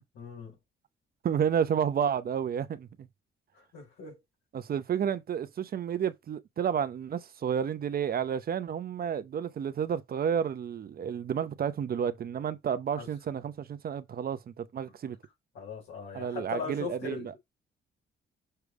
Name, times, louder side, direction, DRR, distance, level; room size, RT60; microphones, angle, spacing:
voice 1, 0.1-0.6 3.5-4.2 13.0-13.1 15.5-17.4, left 4 dB, 75° left, 4.6 m, -39 dB
voice 2, 1.2-2.9 4.5-15.2 16.1-17.3, right 8 dB, 50° right, 0.7 m, -31 dB
6.7 x 3.2 x 4.7 m
cardioid pair, 90°, 20 cm